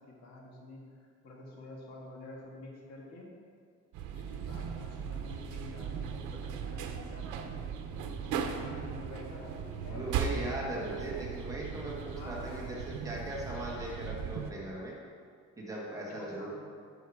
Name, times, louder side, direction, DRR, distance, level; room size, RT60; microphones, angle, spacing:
voice 1, 0.0-3.3 4.1-7.7 8.2-11.3 12.2-12.8 16.0-16.5, left 2 dB, 60° left, -2 dB, 1.8 m, -48 dB
sound 1, 3.9-14.5, right 7 dB, 75° right, 0.9 m, -38 dB
voice 2, 9.9-14.9 15.6-16.5, right 1 dB, 10° right, -4 dB, 1.4 m, -39 dB
10.0 x 6.5 x 4.8 m, 2.1 s
cardioid pair, 165°, 30 cm